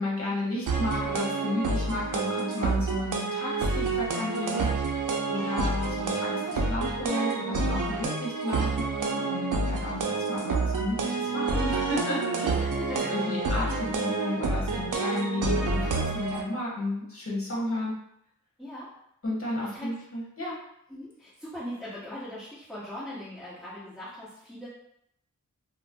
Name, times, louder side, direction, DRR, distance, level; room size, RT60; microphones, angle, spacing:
voice 1, 0.0-12.5 13.1-17.9 19.2-20.6, left 2 dB, 45° left, -5 dB, 1.1 m, -33 dB
sound 1, 0.7-16.4, right 3 dB, 70° right, 0.5 m, -28 dB
voice 2, 5.4-5.8 8.2-8.3 12.3-13.7 18.6-18.9 19.6-19.9 20.9-24.7, left 1 dB, 5° left, -13 dB, 1.1 m, -40 dB
2.4 x 2.0 x 3.5 m, 0.76 s
wide cardioid pair, 65°, 33 cm